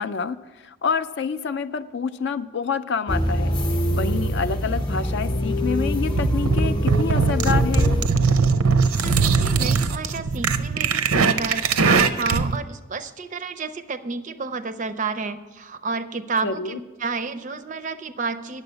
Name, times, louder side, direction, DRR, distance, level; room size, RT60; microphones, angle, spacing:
voice 1, 0.0-3.5 3.9-8.0 16.4-16.8, left 5 dB, 55° left, 11 dB, 0.4 m, -27 dB
sound 1, 3.1-8.1, equal, 20° left, 0.7 m, -24 dB
sound 2, 6.1-12.6, right 5 dB, 85° right, 0.6 m, -20 dB
voice 2, 9.0-18.6, right 4 dB, 35° right, 11 dB, 0.4 m, -30 dB
9.7 x 7.0 x 6.7 m, 1.2 s
head